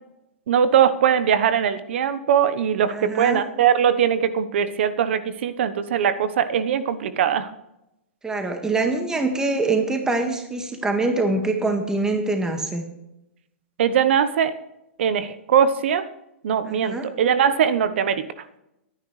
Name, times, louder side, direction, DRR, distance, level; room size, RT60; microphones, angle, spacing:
voice 1, 0.5-7.5 13.8-14.6 15.0-16.1 16.4-18.3, right 8 dB, 65° right, 12 dB, 1.1 m, -21 dB
voice 2, 2.9-3.5 8.2-12.8 16.6-17.1, right 3 dB, 10° right, 4 dB, 1.8 m, -24 dB
22.0 x 9.9 x 3.3 m, 0.88 s
hypercardioid pair, 120°, 7 cm